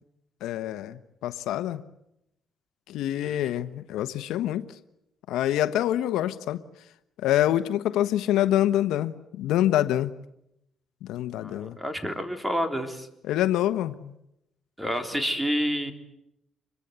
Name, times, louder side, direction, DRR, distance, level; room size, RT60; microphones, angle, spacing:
voice 1, 0.4-1.8 2.9-4.7 5.3-6.6 7.2-10.1 11.0-11.8 13.3-14.1, left 12 dB, 90° left, 11 dB, 1.1 m, -26 dB
voice 2, 11.4-13.1 14.8-15.9, equal, 5° right, 7 dB, 3.7 m, -29 dB
27.0 x 23.0 x 8.1 m, 0.82 s
cardioid pair, 90°, 0 cm